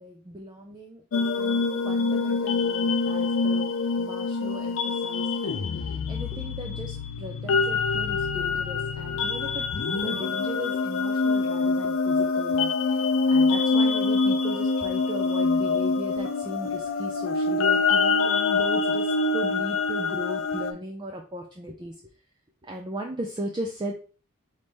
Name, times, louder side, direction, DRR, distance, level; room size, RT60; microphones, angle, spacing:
voice 1, 0.0-3.7 4.0-9.6 9.9-21.9 22.6-23.9, right 1 dB, 20° right, 1 dB, 0.4 m, -37 dB
sound 1, 1.1-20.7, left 4 dB, 65° left, 0.4 m, -25 dB
4.0 x 3.2 x 3.4 m, 0.39 s
head